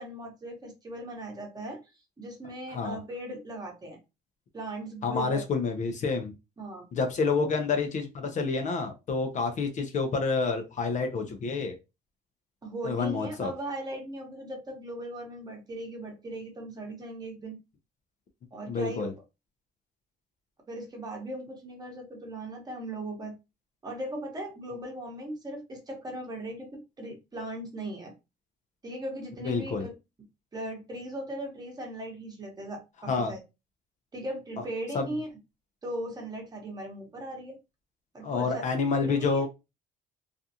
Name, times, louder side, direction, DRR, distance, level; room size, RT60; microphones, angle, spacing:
voice 1, 0.0-1.8 2.2-4.0 4.5-5.4 6.6-6.8 12.6-17.6 18.5-19.1 20.7-23.3 23.8-28.1 28.8-29.9 30.5-33.4 34.1-35.3 35.8-37.6 38.1-38.6 39.0-39.5, right 1 dB, 25° right, 1 dB, 1.0 m, -38 dB
voice 2, 5.0-6.3 6.9-11.8 12.8-13.5 18.7-19.1 29.4-29.9 33.1-33.3 34.9-35.1 38.2-39.5, left 4 dB, 45° left, 5 dB, 0.6 m, -28 dB
2.5 x 2.3 x 2.7 m, 0.25 s
cardioid pair, 110°, 17 cm